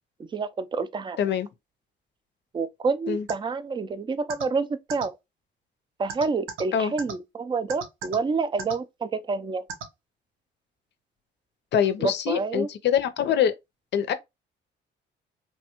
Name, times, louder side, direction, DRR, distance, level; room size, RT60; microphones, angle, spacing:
voice 1, 0.3-1.2 2.5-5.2 6.0-9.6 12.0-12.7, right 4 dB, 25° right, 0.4 m, -28 dB
voice 2, 1.2-1.5 3.1-3.3 6.7-6.9 11.7-13.5 13.9-14.1, left 8 dB, 65° left, 0.5 m, -24 dB
sound 1, 3.3-3.4 4.3-4.4 4.9-5.0 6.1-6.6 7.0-7.1 7.7-8.2 8.6-8.7 9.7-9.8, right 6 dB, 85° right, 0.8 m, -33 dB
3.1 x 2.2 x 2.8 m
cardioid pair, 90°, 20 cm